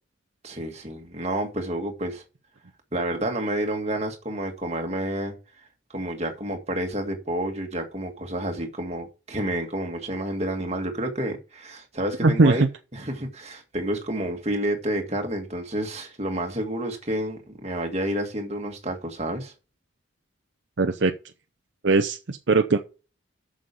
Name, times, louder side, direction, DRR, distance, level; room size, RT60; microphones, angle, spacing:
voice 1, 0.4-2.2 2.9-5.3 5.9-12.6 12.9-19.5, right 1 dB, 30° right, 1.8 m, -29 dB
voice 2, 12.2-12.7 20.8-21.1 21.8-22.8, right 3 dB, 60° right, 0.6 m, -20 dB
7.5 x 6.5 x 6.9 m
head